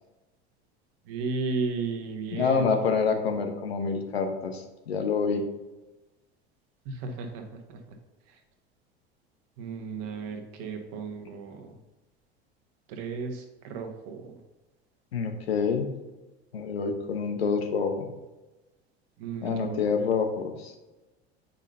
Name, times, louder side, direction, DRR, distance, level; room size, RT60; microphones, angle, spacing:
voice 1, 1.1-2.8 6.8-7.8 9.6-11.8 12.9-14.4 19.2-20.1, right 4 dB, 50° right, 4 dB, 1.4 m, -34 dB
voice 2, 2.3-5.4 15.1-15.9 16.5-18.1 19.4-20.7, left 5 dB, 70° left, 4 dB, 1.1 m, -27 dB
8.7 x 5.5 x 2.8 m, 1.1 s
figure-of-eight pair, 75°, 32 cm